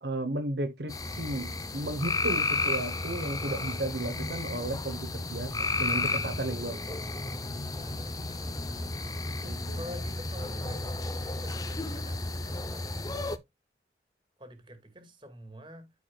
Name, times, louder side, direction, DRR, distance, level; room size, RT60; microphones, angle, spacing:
voice 1, 0.0-7.0 9.5-9.8, right 2 dB, 75° right, 1.1 m, -34 dB
sound 1, 0.9-13.4, left 3 dB, 20° left, 0.7 m, -33 dB
voice 2, 7.8-9.0 9.4-13.4 14.4-15.9, equal, 25° right, 2.1 m, -47 dB
13.0 x 4.8 x 2.4 m
head